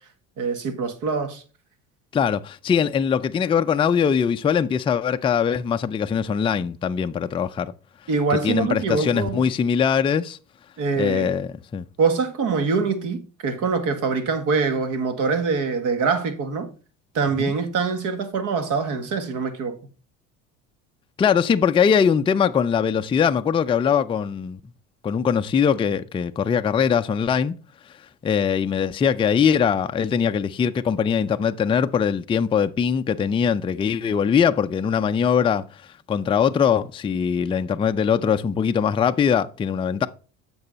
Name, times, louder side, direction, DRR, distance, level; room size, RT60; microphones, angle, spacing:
voice 1, 0.4-1.4 8.1-9.4 10.8-11.4 12.0-16.7 17.1-19.7, right 4 dB, 55° right, 1.7 m, -24 dB
voice 2, 2.1-7.7 8.3-10.4 11.0-11.8 17.4-17.5 21.2-24.6 25.0-27.6 28.2-35.6 36.1-40.1, left 7 dB, 15° left, 0.4 m, -21 dB
8.6 x 6.2 x 4.0 m
supercardioid pair, 90°, 37 cm